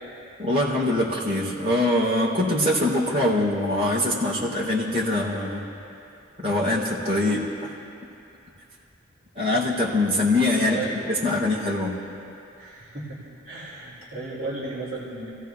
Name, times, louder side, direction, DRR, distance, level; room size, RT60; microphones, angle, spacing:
voice 1, 0.4-5.7 6.4-7.7 9.3-12.0, left 1 dB, 30° right, -6 dB, 3.2 m, -23 dB
voice 2, 10.6-11.0 12.6-13.2 13.5-15.3, right 2 dB, 50° right, -7 dB, 2.6 m, -34 dB
30.0 x 16.5 x 2.3 m, 2.7 s
head